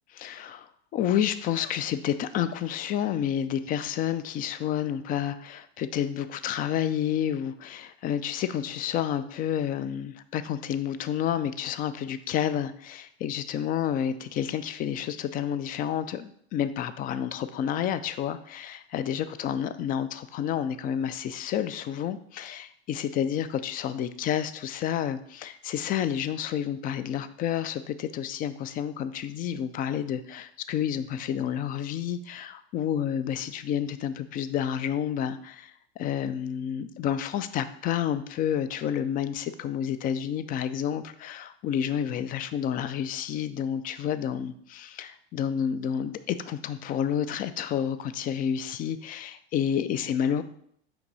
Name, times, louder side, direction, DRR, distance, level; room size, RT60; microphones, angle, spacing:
voice 1, 0.2-0.7 0.9-50.4, left 9 dB, 25° left, 13 dB, 0.3 m, -30 dB
5.8 x 4.6 x 4.0 m, 0.67 s
hypercardioid pair, 95°, 34 cm